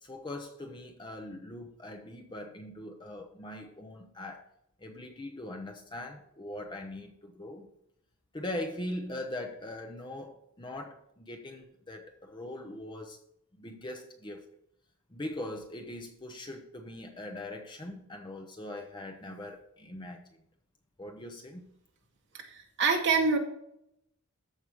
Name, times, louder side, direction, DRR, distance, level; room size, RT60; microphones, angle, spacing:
voice 1, 0.0-4.5 4.8-7.7 8.3-13.2 13.6-14.4 15.1-20.3 21.0-21.7, left 1 dB, 20° left, 3 dB, 0.7 m, -41 dB
voice 2, 22.3-23.4, right 4 dB, 55° right, 2 dB, 1.2 m, -26 dB
13.5 x 4.8 x 3.6 m, 0.77 s
head